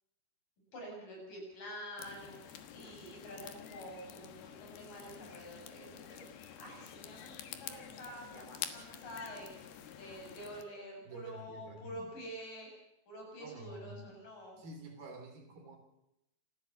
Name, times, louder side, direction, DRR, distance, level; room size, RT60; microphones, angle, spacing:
voice 1, 0.7-12.7 13.1-14.6, equal, 60° left, 0 dB, 8.9 m, -48 dB
sound 1, 2.0-10.6, left 10 dB, 85° left, 3.3 m, -48 dB
voice 2, 11.1-12.1 13.4-14.2 14.6-15.8, right 1 dB, 75° right, 4 dB, 5.2 m, -49 dB
28.5 x 13.5 x 7.2 m, 0.86 s
omnidirectional pair, 4.3 m